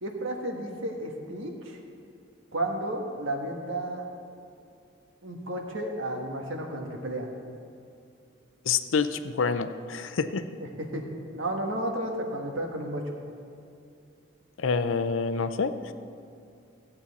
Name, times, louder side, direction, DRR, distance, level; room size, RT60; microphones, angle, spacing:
voice 1, 0.0-1.8 2.5-4.1 5.2-7.3 10.6-11.0 11.3-13.1, right 1 dB, 80° right, 2 dB, 1.4 m, -32 dB
voice 2, 8.6-10.5 14.6-15.9, left 5 dB, 80° left, 11 dB, 0.5 m, -27 dB
15.0 x 8.6 x 4.1 m, 2.5 s
head